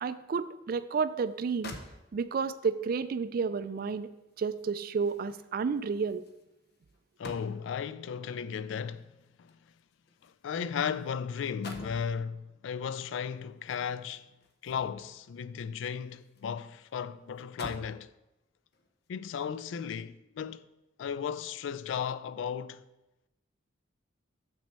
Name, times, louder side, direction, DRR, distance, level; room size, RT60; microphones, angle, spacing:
voice 1, 0.0-1.8 2.1-4.1 4.4-6.2, right 5 dB, 50° right, 0.3 m, -31 dB
sound 1, 1.3-1.4 1.6-2.5 3.9-7.9 9.0-11.1 11.4-12.1 13.6-15.2 15.6-16.5 16.8-16.9 17.4-18.0 18.7-18.9, left 2 dB, 55° left, 0.7 m, -48 dB
voice 2, 7.2-9.1 9.4-9.5 10.2-14.3 14.6-18.1 19.1-20.6 21.0-22.8, left 7 dB, 70° left, 0.3 m, -35 dB
7.0 x 6.2 x 4.3 m
head